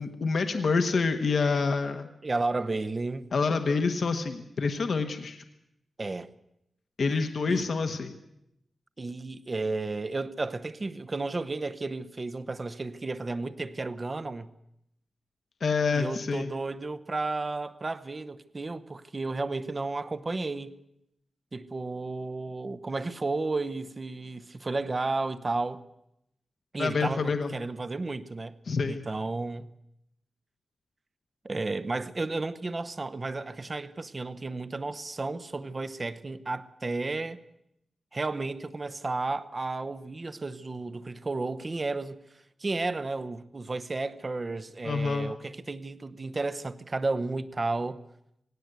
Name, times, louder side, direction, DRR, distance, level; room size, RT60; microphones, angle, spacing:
voice 1, 0.0-2.1 3.3-5.4 7.0-8.2 15.6-16.5 26.8-27.5 28.7-29.0 44.8-45.3, left 4 dB, 60° left, 1.2 m, -27 dB
voice 2, 2.2-3.3 6.0-6.3 7.5-7.7 9.0-14.5 15.9-20.7 21.5-25.8 26.7-28.6 28.9-29.7 31.4-37.4 38.1-42.2 42.6-48.0, right 3 dB, 30° right, 0.8 m, -33 dB
18.5 x 17.5 x 8.2 m
wide cardioid pair, 130°, 0 cm